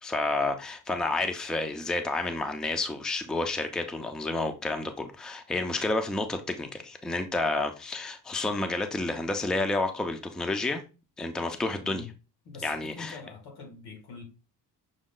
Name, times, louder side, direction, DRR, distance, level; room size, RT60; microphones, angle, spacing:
voice 1, 0.0-10.8 11.2-12.0 12.6-13.2, left 2 dB, ahead, 0.4 m, -30 dB
voice 2, 12.5-14.2, left 4 dB, 85° left, 1.7 m, -44 dB
6.2 x 2.2 x 3.7 m
cardioid pair, 150°, 37 cm